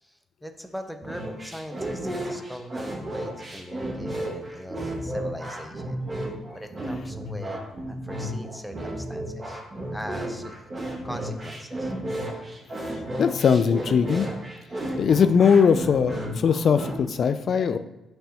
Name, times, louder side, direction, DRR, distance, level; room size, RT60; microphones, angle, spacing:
voice 1, 0.0-6.0 6.5-9.6 9.9-10.7 11.0-11.9, equal, ahead, 6 dB, 0.8 m, -40 dB
sound 1, 1.0-17.0, right 1 dB, 35° right, 1.9 m, -33 dB
voice 2, 13.2-14.3 15.0-17.8, left 6 dB, 55° left, 10 dB, 0.3 m, -20 dB
9.0 x 5.5 x 2.9 m, 1.0 s
cardioid pair, 90°, 0 cm